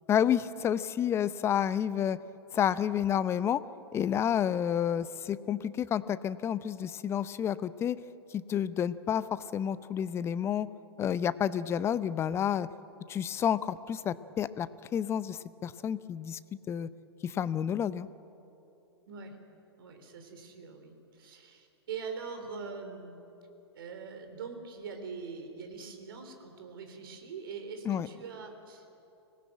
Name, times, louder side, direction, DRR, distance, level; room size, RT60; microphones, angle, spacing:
voice 1, 0.1-2.2 2.5-3.6 3.9-8.0 8.3-10.7 11.0-12.7 13.1-14.7 14.9-16.4 16.7-16.9 17.2-18.1 27.9-28.1, left 9 dB, 20° left, 16 dB, 0.7 m, -30 dB
voice 2, 19.1-19.4 19.8-23.2 23.7-28.9, right 5 dB, 55° right, 6 dB, 3.8 m, -43 dB
25.5 x 19.0 x 9.1 m, 2.9 s
figure-of-eight pair, 110°, 14 cm